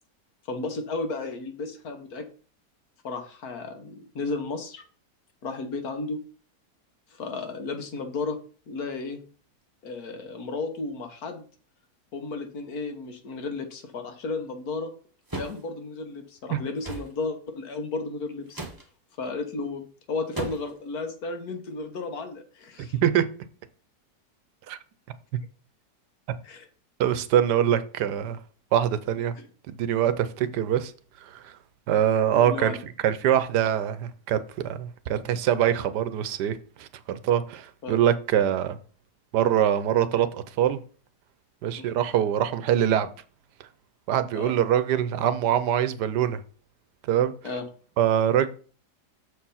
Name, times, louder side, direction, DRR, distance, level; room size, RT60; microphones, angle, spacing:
voice 1, 0.5-2.3 3.0-4.8 5.4-6.2 7.1-8.4 8.7-9.2 9.8-11.5 12.1-14.9 15.3-18.6 19.2-23.0 26.4-26.7 29.3-29.5 32.3-32.8 37.8-38.0 41.8-41.9 44.3-44.5 47.4-47.6, left 3 dB, 65° left, 1.6 m, -33 dB
sound 1, 15.3-15.6 16.8-17.1 18.5-18.8 20.4-20.8, right 2 dB, 20° right, 0.7 m, -34 dB
voice 2, 27.0-28.4 28.7-29.3 29.7-30.9 31.4-31.5 31.9-32.7 33.0-34.4 34.6-38.8 39.3-40.8 41.6-43.1 44.1-46.4 47.1-47.3 48.0-48.5, right 10 dB, 80° right, 1.3 m, -23 dB
6.8 x 4.6 x 5.6 m
omnidirectional pair, 1.8 m